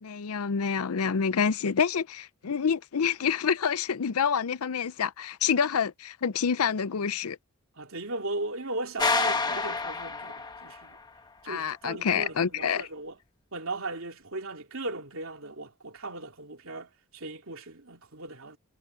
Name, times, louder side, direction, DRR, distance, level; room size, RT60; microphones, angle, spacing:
voice 1, 0.0-7.4 11.5-12.9, left 6 dB, 90° left, 0.6 m, -27 dB
voice 2, 7.8-11.0 11.4-13.2 13.5-18.6, right 2 dB, 75° right, 2.6 m, -37 dB
sound 1, 9.0-10.9, left 4 dB, 20° left, 1.1 m, -28 dB
head